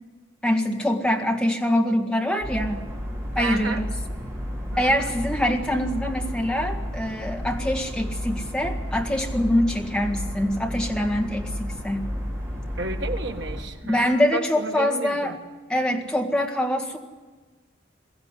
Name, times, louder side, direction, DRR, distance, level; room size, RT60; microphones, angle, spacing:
voice 1, 0.4-2.8 3.3-3.9 4.8-12.1 13.8-15.4 15.7-17.0, left 1 dB, 5° left, 2 dB, 1.8 m, -24 dB
sound 1, 2.4-13.6, equal, 15° right, 4.3 m, -32 dB
voice 2, 3.4-3.8 4.7-5.1 12.8-15.4, right 3 dB, 75° right, 3 dB, 2.0 m, -32 dB
22.5 x 15.0 x 9.8 m, 1.3 s
head